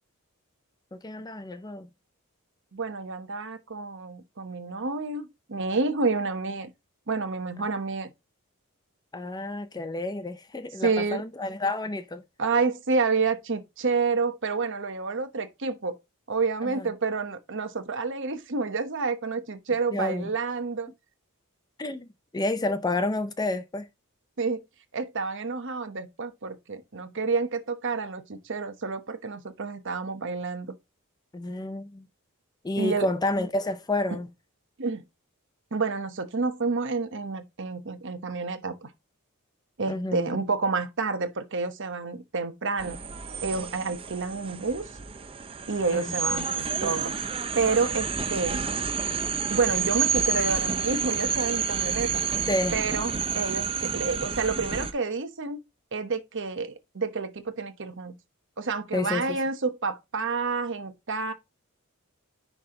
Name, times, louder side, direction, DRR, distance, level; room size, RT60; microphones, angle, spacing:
voice 1, 0.9-1.9 9.1-12.2 16.6-16.9 19.9-20.3 21.8-22.1 22.3-23.9 31.3-32.1 32.6-34.3 39.9-40.4 45.9-46.2 52.5-52.8 58.9-59.4, left 2 dB, 20° left, 0.5 m, -30 dB
voice 2, 2.7-6.7 7.1-8.1 10.8-11.2 12.4-15.9 16.3-20.9 24.4-24.6 24.9-30.7 32.8-33.1 34.8-35.0 35.7-38.9 39.8-43.0 43.4-44.8 45.7-47.1 47.6-48.7 49.5-52.2 52.7-55.6 55.9-58.2 58.6-61.3, right 4 dB, 55° right, 1.1 m, -29 dB
sound 1, 42.8-54.9, right 6 dB, 25° right, 0.6 m, -29 dB
10.0 x 3.5 x 3.8 m
head